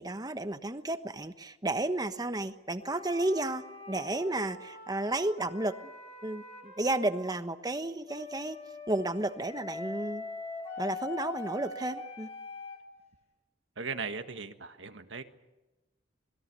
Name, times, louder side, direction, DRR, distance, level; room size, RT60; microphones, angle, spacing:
voice 1, 0.0-5.8 6.2-8.6 8.9-10.2 10.8-12.3, right 2 dB, 20° right, 10 dB, 1.2 m, -32 dB
sound 1, 2.8-7.4 8.1-12.8, left 3 dB, 35° left, 6.3 m, -43 dB
voice 2, 13.8-15.2, right 4 dB, 80° right, 7 dB, 1.7 m, -38 dB
27.0 x 21.0 x 6.9 m, 1.0 s
head